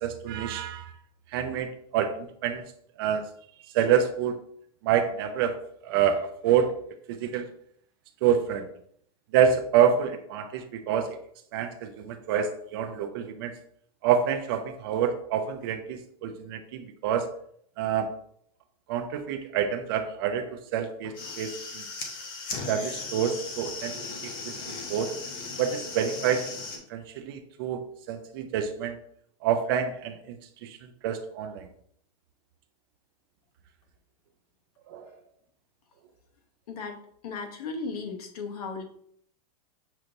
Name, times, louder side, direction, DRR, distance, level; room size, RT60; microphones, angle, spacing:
voice 1, 0.0-0.9 1.3-2.6 3.0-3.3 3.7-4.4 4.8-6.7 7.1-7.5 8.2-8.7 9.3-11.2 11.5-13.5 14.0-17.3 17.8-18.1 18.9-21.8 22.7-24.0 24.2-25.1 25.6-26.5 26.9-29.0 29.4-30.4 30.6-31.7 34.9-35.1, right 8 dB, 35° right, 8 dB, 0.4 m, -27 dB
sound 1, 21.0-26.8, left 4 dB, 20° left, 0.5 m, -37 dB
voice 2, 36.7-37.0 37.2-38.8, left 4 dB, 70° left, 4 dB, 0.9 m, -35 dB
6.4 x 2.9 x 2.6 m, 0.66 s
supercardioid pair, 165°, 20 cm